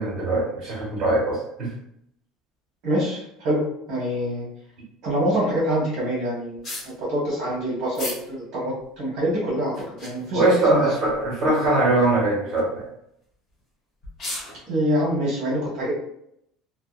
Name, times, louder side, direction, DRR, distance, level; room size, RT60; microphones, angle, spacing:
voice 1, 0.0-1.7 10.3-12.9, right 2 dB, 25° right, -4 dB, 1.2 m, -21 dB
voice 2, 2.8-4.4 5.0-6.7 7.0-9.7 10.0-10.9 14.7-15.9, equal, 50° right, -6 dB, 1.0 m, -25 dB
sound 1, 6.6-6.9 7.9-8.2 8.8-8.9 9.7-10.3 11.0-11.3 11.6-11.7 12.4-12.6 13.6-13.7 14.0-14.6, left 1 dB, 30° left, 0.9 m, -34 dB
2.6 x 2.1 x 2.3 m, 0.75 s
cardioid pair, 180°, 0 cm